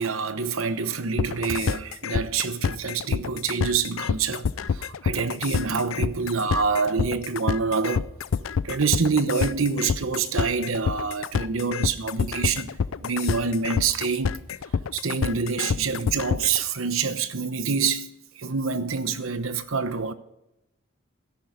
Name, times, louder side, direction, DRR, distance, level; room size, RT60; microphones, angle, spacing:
voice 1, 0.0-8.1 8.6-12.7 13.0-14.4 14.9-20.1, right 5 dB, 90° right, 1.0 m, -26 dB
sound 1, 1.2-16.6, left 6 dB, 85° left, 0.4 m, -27 dB
13.5 x 10.5 x 5.1 m
head